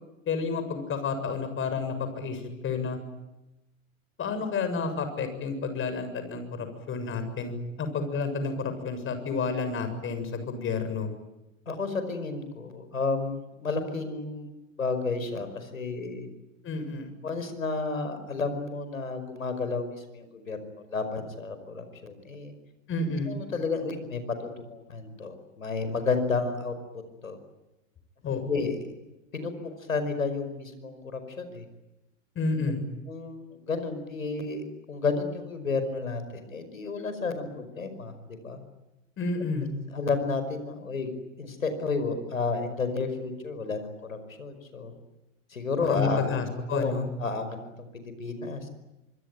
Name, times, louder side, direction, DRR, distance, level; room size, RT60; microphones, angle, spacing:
voice 1, 0.3-3.0 4.2-11.1 16.6-17.1 22.9-23.3 28.2-28.6 32.4-32.8 39.2-39.7 45.8-47.1, left 4 dB, 30° left, 9 dB, 7.2 m, -30 dB
voice 2, 11.7-14.5 14.8-16.3 17.2-20.6 20.9-22.5 23.3-24.2 24.6-26.7 27.2-27.4 28.5-28.8 29.3-31.6 33.1-38.6 39.9-41.1 41.4-44.9 45.5-46.2 46.7-46.9 47.2-48.7, left 4 dB, 85° left, 9 dB, 5.3 m, -31 dB
25.5 x 25.0 x 9.3 m, 0.99 s
figure-of-eight pair, 90°, 40 cm